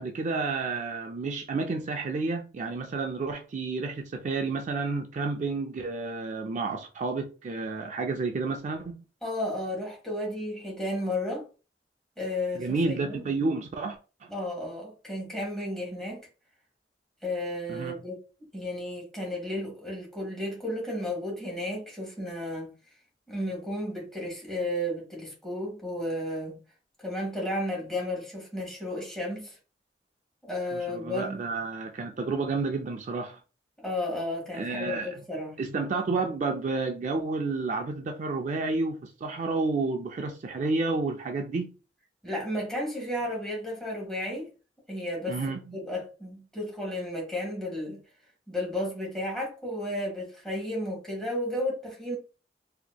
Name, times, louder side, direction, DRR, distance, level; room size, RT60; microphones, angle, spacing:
voice 1, 0.0-9.0 12.6-14.3 17.7-18.0 30.7-33.4 34.5-35.1 35.6-41.7 45.3-45.6, right 3 dB, 45° right, 0.3 m, -30 dB
voice 2, 9.2-11.4 12.2-13.2 14.3-16.3 17.2-18.2 18.5-22.7 23.3-26.6 27.0-29.6 30.4-31.4 33.8-35.5 42.2-44.5 44.9-45.4 45.7-48.0 48.5-52.2, left 1 dB, 5° left, 1.6 m, -33 dB
4.3 x 2.9 x 2.2 m
head